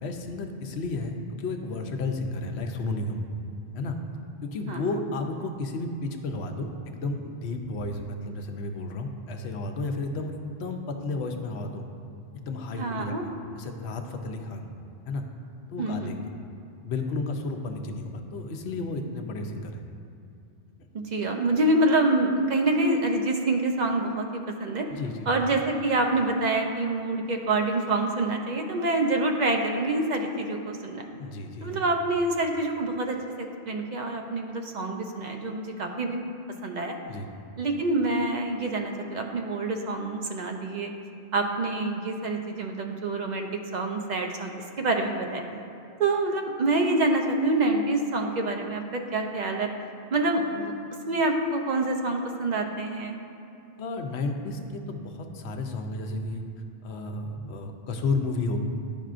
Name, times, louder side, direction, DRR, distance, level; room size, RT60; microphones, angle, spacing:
voice 1, 0.0-3.2 3.7-4.0 4.4-11.8 12.3-14.7 15.1-15.2 15.7-16.3 16.8-19.8 24.9-25.3 31.2-31.8 37.1-37.3 53.8-56.4 56.8-58.6, left 2 dB, 80° left, 4 dB, 0.9 m, -32 dB
voice 2, 12.8-13.2 15.8-16.2 20.9-24.9 25.3-31.1 31.6-33.2 33.7-36.2 36.6-37.0 37.6-40.9 41.3-44.5 44.8-45.4 46.0-49.7 50.1-50.7 51.1-53.2, right 2 dB, 50° right, 3 dB, 0.6 m, -26 dB
10.5 x 5.4 x 2.5 m, 2.6 s
omnidirectional pair, 1.1 m